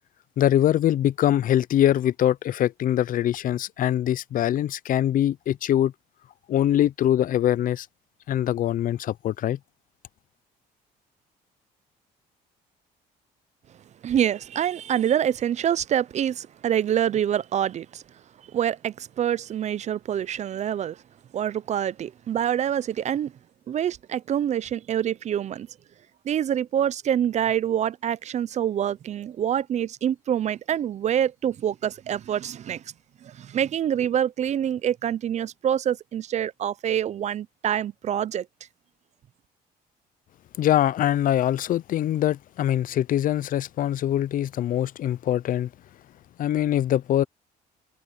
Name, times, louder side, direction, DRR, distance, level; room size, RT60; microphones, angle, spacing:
voice 1, 0.4-5.9 6.5-7.9 8.3-9.6 40.6-45.7 46.4-47.2, left 11 dB, 55° left, 0.5 m, -23 dB
voice 2, 14.0-18.0 18.5-21.0 21.3-23.3 23.7-25.7 26.2-32.8 33.2-38.5, right 10 dB, 45° right, 0.5 m, -26 dB
cardioid pair, 110°, 17 cm